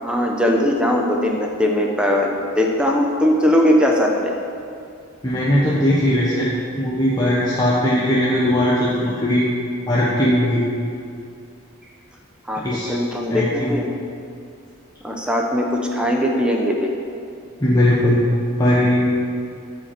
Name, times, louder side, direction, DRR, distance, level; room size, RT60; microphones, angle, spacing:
voice 1, 0.0-4.3 12.5-13.8 15.0-16.9, equal, 5° right, 0 dB, 0.9 m, -20 dB
voice 2, 5.2-9.5 9.9-10.6 12.6-13.8 17.6-18.2 18.6-19.1, left 1 dB, 20° left, -7 dB, 1.3 m, -19 dB
12.5 x 5.4 x 7.7 m, 2.4 s
head